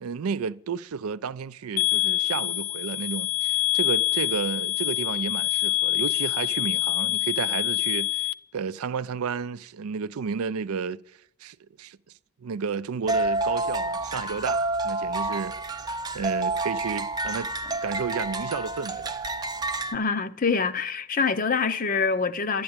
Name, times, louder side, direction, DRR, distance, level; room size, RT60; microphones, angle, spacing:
voice 1, 0.0-11.0 11.4-12.0 12.4-15.6 16.1-17.5 17.8-19.2, right 6 dB, 75° right, 0.4 m, -32 dB
sound 1, 1.8-8.3, left 13 dB, 85° left, 0.5 m, -26 dB
sound 2, 13.1-20.0, right 2 dB, 20° right, 0.5 m, -29 dB
voice 2, 19.9-22.6, left 5 dB, 40° left, 0.6 m, -25 dB
11.0 x 10.5 x 8.7 m
head